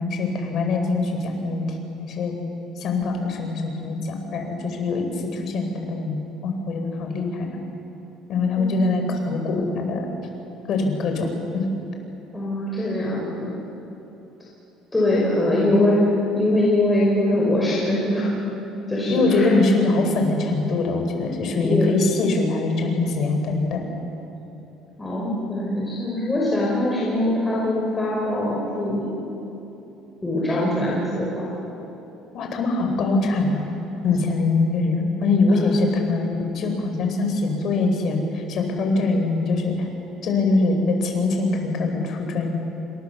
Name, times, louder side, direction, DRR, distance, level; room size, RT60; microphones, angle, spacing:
voice 1, 0.0-1.6 2.0-2.4 2.8-7.5 8.3-10.1 10.7-11.3 11.5-11.7 19.1-23.8 32.3-33.7 34.0-39.9 40.2-42.5, left 3 dB, 45° left, 4 dB, 5.0 m, -23 dB
voice 2, 8.6-9.1 12.3-13.5 14.9-16.0 16.3-18.3 18.9-19.6 21.5-21.9 25.0-29.1 30.2-31.4 35.5-36.1, left 1 dB, 10° left, -6 dB, 5.4 m, -23 dB
29.0 x 25.5 x 7.1 m, 3.0 s
cardioid pair, 155°, 0 cm